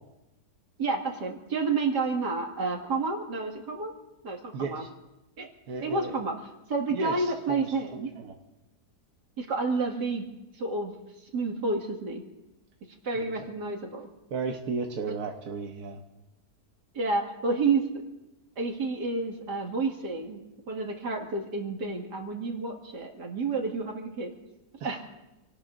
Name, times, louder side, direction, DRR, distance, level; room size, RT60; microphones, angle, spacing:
voice 1, 0.8-3.9 4.2-4.8 5.4-5.5 5.8-6.4 6.7-8.1 9.4-10.2 10.5-10.9 11.2-12.2 13.0-14.1 15.1-15.2 16.9-17.8 18.6-20.4 20.7-24.3 24.8-25.0, right 3 dB, 85° right, 1 dB, 2.7 m, -30 dB
voice 2, 4.5-4.9 5.7-6.1 6.9-7.7 7.9-8.3 13.1-13.2 14.3-16.0 24.8-25.0, right 4 dB, 70° right, 2 dB, 1.6 m, -34 dB
28.5 x 18.0 x 2.6 m, 1.0 s
omnidirectional pair, 1.7 m